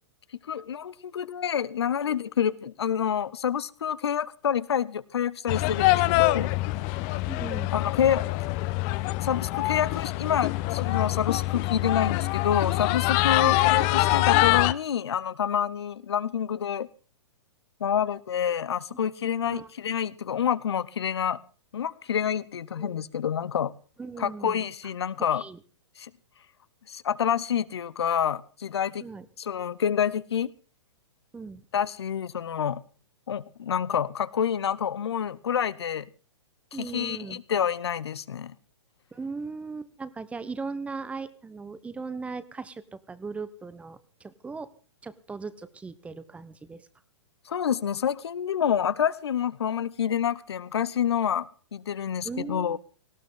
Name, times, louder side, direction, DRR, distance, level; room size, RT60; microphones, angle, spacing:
voice 1, 0.4-6.5 7.7-8.3 9.2-16.9 17.8-21.4 21.7-23.7 24.2-25.4 26.0-26.1 26.9-29.1 29.4-30.5 31.7-32.8 33.3-36.1 36.7-38.5 47.5-52.8, left 8 dB, 65° left, 0.9 m, -28 dB
sound 1, 5.5-14.7, left 19 dB, 35° left, 0.7 m, -24 dB
voice 2, 7.3-7.7 13.4-13.6 18.9-19.0 19.4-19.7 22.8-23.0 24.0-24.6 25.2-25.6 29.0-29.2 31.3-31.6 36.7-37.4 39.1-44.7 45.0-46.8 52.2-52.8, right 4 dB, 10° right, 1.0 m, -38 dB
19.0 x 17.0 x 3.8 m
figure-of-eight pair, 115°, 15 cm